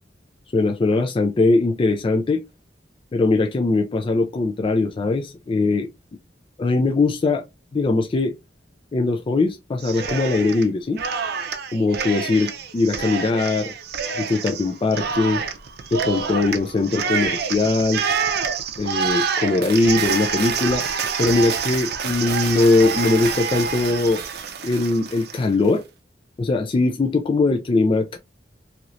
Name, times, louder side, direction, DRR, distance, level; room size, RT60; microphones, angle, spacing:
voice 1, 0.5-2.4 3.1-5.9 6.6-7.5 7.7-8.3 8.9-11.0 11.7-13.7 14.2-15.4 15.9-18.0 18.8-20.8 21.2-24.2 24.6-25.8 26.4-28.2, left 3 dB, 30° left, 0.3 m, -21 dB
Cheering, 9.8-10.7 11.0-25.4, right 6 dB, 60° right, 0.5 m, -27 dB
3.0 x 2.8 x 2.5 m
head